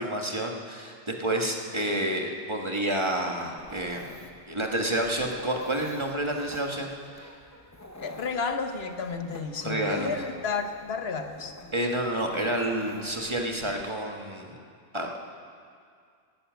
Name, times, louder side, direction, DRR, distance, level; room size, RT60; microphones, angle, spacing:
voice 1, 0.0-4.2 4.5-7.3 9.6-10.1 11.7-14.5 14.9-15.2, right 1 dB, 25° right, 1 dB, 1.5 m, -29 dB
Dog, 3.6-13.8, left 1 dB, 15° left, 1.1 m, -48 dB
voice 2, 8.0-11.6, left 5 dB, 70° left, 7 dB, 1.1 m, -31 dB
13.5 x 11.5 x 9.2 m, 2.2 s
omnidirectional pair, 1.1 m